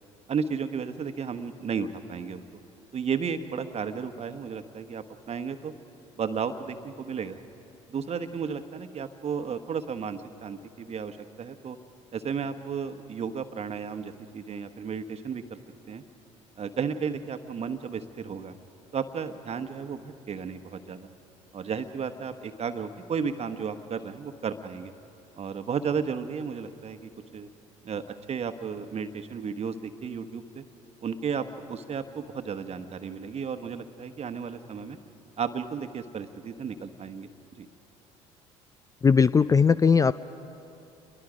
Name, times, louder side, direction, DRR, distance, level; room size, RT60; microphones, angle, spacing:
voice 1, 0.3-2.4 2.9-5.7 6.2-7.4 7.9-11.8 12.1-15.6 15.9-16.0 16.6-18.5 18.9-21.1 21.5-24.9 25.4-27.5 27.8-28.0 28.3-30.6 31.0-35.0 35.4-37.3 37.6-37.7, right 6 dB, 40° right, 9 dB, 1.2 m, -33 dB
voice 2, 39.0-40.1, left 5 dB, 20° left, 16 dB, 0.4 m, -19 dB
28.5 x 22.0 x 5.1 m, 2.9 s
hypercardioid pair, 60°, 16 cm